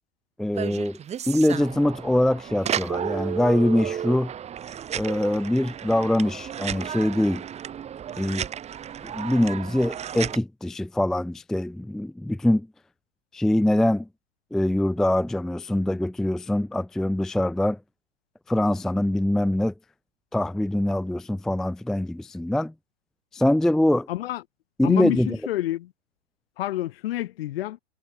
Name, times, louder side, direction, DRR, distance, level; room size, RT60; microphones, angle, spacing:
voice 1, 0.4-1.0 1.3-4.3 4.9-7.4 8.2-8.5 9.0-12.7 13.3-14.1 14.5-17.8 18.5-19.7 20.3-22.7 23.3-24.1 24.8-25.4, left 1 dB, ahead, 0.6 m, -23 dB
sound 1, 0.6-10.4, right 9 dB, 20° right, 4.0 m, -33 dB
voice 2, 24.1-24.4 24.8-25.9 26.6-27.8, left 14 dB, 55° left, 5.0 m, -28 dB
hypercardioid pair, 135°, 36 cm